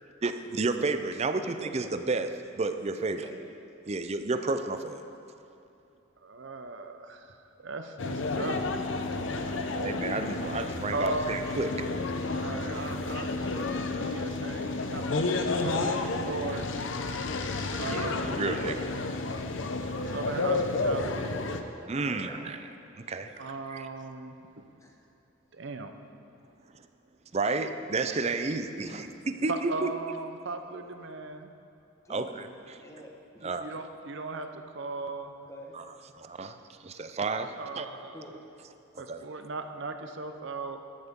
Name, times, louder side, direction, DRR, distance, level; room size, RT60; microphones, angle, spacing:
voice 1, 0.2-3.3 3.9-5.0 9.7-11.9 15.8-16.1 17.8-18.9 21.9-22.6 22.9-23.3 23.7-23.9 27.3-29.9 32.1-32.8 33.4-33.7 35.7-35.8 36.2-37.9 38.9-39.2, right 3 dB, 30° right, 9 dB, 0.5 m, -31 dB
voice 2, 1.4-1.7 3.0-3.4 22.0-22.6 23.0-23.3 24.8-25.0 28.8-29.2 32.0-32.3 32.8-33.5 35.5-35.7 38.1-38.4, left 1 dB, 15° left, 0 dB, 1.2 m, -47 dB
voice 3, 6.2-7.4 7.6-8.6 10.9-11.6 12.4-13.7 14.1-16.7 17.8-18.4 20.1-21.4 23.4-24.7 25.5-25.9 29.5-31.5 33.4-35.3 37.6-38.2 39.0-40.8, right 3 dB, 60° right, 7 dB, 0.8 m, -37 dB
sound 1, 8.0-21.6, left 3 dB, 65° left, 0.7 m, -31 dB
13.5 x 11.5 x 3.7 m, 2.7 s
head